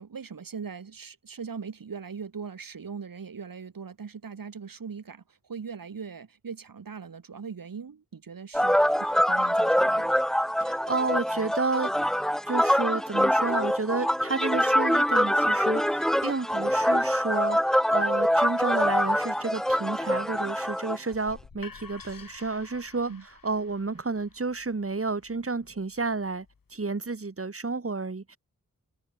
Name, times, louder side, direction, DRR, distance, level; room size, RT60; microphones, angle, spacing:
voice 1, 0.0-10.1 23.1-23.2, right 6 dB, 80° right, 3.4 m, -40 dB
sound 1, 8.5-21.0, equal, ahead, 1.1 m, -24 dB
voice 2, 10.6-11.9 12.5-23.1 23.4-28.4, right 3 dB, 40° right, 2.9 m, -31 dB
sound 2, 21.1-26.9, left 5 dB, 75° left, 7.0 m, -51 dB
cardioid pair, 50°, 34 cm